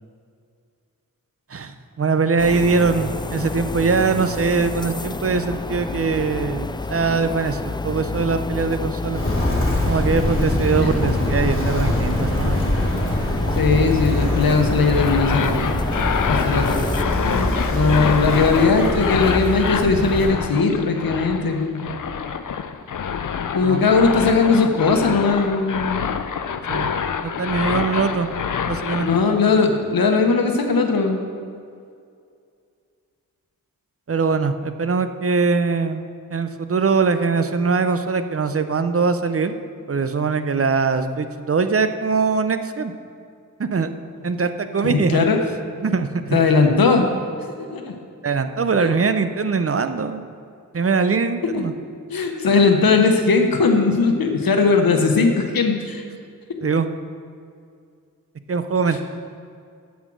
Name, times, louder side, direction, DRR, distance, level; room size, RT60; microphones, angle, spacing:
voice 1, 1.5-9.2 9.8-12.6 23.6-23.8 26.7-26.9 27.2-28.3 28.7-29.1 34.1-39.5 39.9-42.9 43.6-43.9 44.2-45.3 45.8-46.4 48.2-50.2 50.7-51.7 56.6-56.9 58.5-59.0, right 4 dB, 40° right, 10 dB, 0.7 m, -22 dB
sound 1, 2.4-17.0, left 3 dB, 15° left, 0.3 m, -29 dB
Walk footsteps, 9.1-20.4, left 1 dB, 35° left, 2.3 m, -23 dB
voice 2, 13.6-15.8 16.3-16.8 17.7-21.9 23.5-26.1 29.0-31.2 44.9-45.4 46.3-47.1 47.6-47.9 48.8-48.9 52.1-56.0, left 4 dB, 85° left, 4 dB, 1.0 m, -18 dB
sound 2, 14.8-29.2, left 7 dB, 65° left, 0.6 m, -27 dB
7.5 x 7.3 x 6.2 m, 2.3 s
cardioid pair, 45°, 35 cm